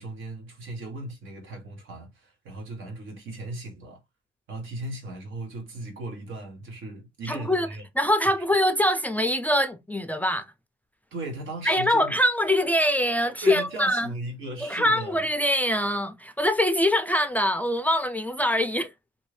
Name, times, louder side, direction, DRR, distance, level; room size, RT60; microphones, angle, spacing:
voice 1, 0.0-4.0 4.5-7.9 11.1-12.1 13.4-15.2, right 2 dB, 80° right, 1.3 m, -37 dB
voice 2, 7.2-7.7 8.0-10.5 11.7-14.1 14.6-18.9, left 1 dB, 10° left, 0.4 m, -23 dB
2.7 x 2.6 x 3.1 m
cardioid pair, 90°, 20 cm